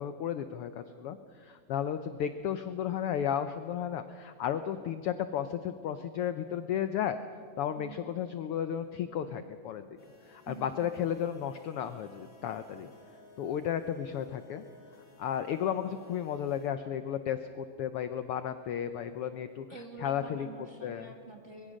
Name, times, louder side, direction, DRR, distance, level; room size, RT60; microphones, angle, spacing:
voice 1, 0.0-7.2 7.6-9.9 10.3-12.9 13.4-14.6 15.2-19.6 20.0-20.5 20.8-21.1, left 9 dB, 75° left, 10 dB, 1.3 m, -33 dB
voice 2, 7.8-8.1 10.5-11.0 19.7-21.8, right 4 dB, 35° right, 2 dB, 1.4 m, -47 dB
sound 1, 10.0-16.7, left 2 dB, 25° left, 3.4 m, -58 dB
24.0 x 22.0 x 6.4 m, 2.1 s
omnidirectional pair, 3.3 m